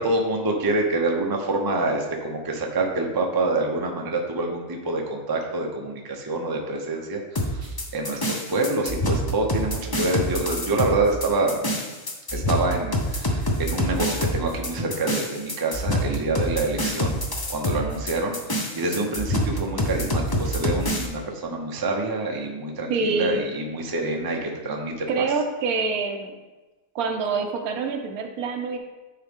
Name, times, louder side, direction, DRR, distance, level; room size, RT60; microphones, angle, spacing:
voice 1, 0.0-11.6 12.3-17.2 17.5-25.2, right 2 dB, 25° right, 1 dB, 0.5 m, -26 dB
sound 1, 7.4-21.1, equal, 25° left, 0.4 m, -26 dB
voice 2, 22.9-23.4 25.1-26.3 26.9-28.8, right 4 dB, 75° right, 5 dB, 1.2 m, -26 dB
9.6 x 3.8 x 3.6 m, 1.2 s
omnidirectional pair, 1.6 m